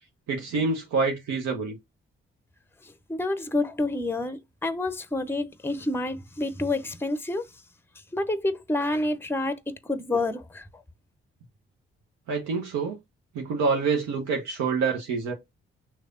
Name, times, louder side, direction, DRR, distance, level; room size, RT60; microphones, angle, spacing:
voice 1, 0.3-1.8 12.3-13.0 13.3-15.3, right 4 dB, 70° right, 0.9 m, -26 dB
voice 2, 2.8-7.5 8.1-10.8, left 2 dB, 10° left, 0.7 m, -29 dB
5.7 x 3.2 x 2.5 m
hypercardioid pair, 40°, 29 cm